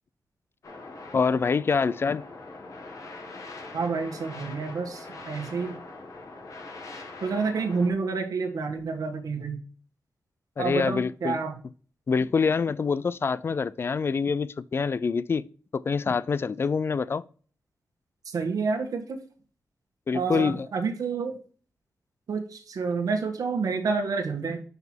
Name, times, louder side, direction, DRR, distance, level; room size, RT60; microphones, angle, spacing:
sound 1, 0.6-7.9, left 3 dB, 60° left, 2.0 m, -42 dB
voice 1, 1.1-2.2 10.6-11.4 12.1-15.4 15.7-17.2 20.1-20.7, left 5 dB, 40° left, 0.3 m, -25 dB
voice 2, 3.7-5.8 7.2-9.6 10.6-11.6 18.2-19.2 20.1-21.4 22.3-24.6, right 4 dB, 70° right, 1.5 m, -29 dB
5.8 x 5.6 x 4.5 m
wide cardioid pair, 100°, 6 cm